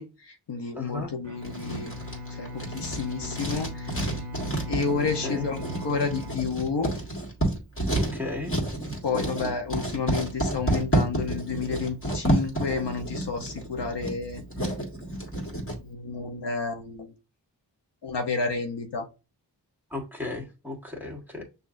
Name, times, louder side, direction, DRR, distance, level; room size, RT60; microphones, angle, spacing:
voice 1, 0.0-1.9 2.3-4.2 4.7-6.9 9.0-14.4 15.8-17.1 18.0-19.0, left 4 dB, 90° left, 0.9 m, -30 dB
voice 2, 0.7-1.1 5.0-5.5 7.9-8.5 19.9-21.5, left 2 dB, 5° right, 1.4 m, -35 dB
Bowed string instrument, 1.2-7.3, left 2 dB, 40° right, 1.2 m, -39 dB
Writing, 1.4-15.8, right 1 dB, 35° left, 1.8 m, -30 dB
6.3 x 2.6 x 2.5 m
wide cardioid pair, 65°, 40 cm